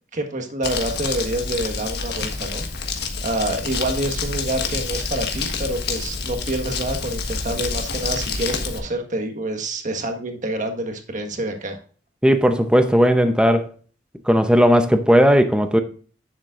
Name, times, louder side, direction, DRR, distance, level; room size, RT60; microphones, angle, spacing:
voice 1, 0.1-2.6 3.2-11.8, right 1 dB, 45° right, 1.4 m, -27 dB
Crumpling crinkling, 0.6-8.8, left 4 dB, 60° left, 1.4 m, -28 dB
voice 2, 12.2-13.7 14.3-15.8, equal, 5° right, 0.7 m, -16 dB
9.9 x 7.3 x 2.5 m
head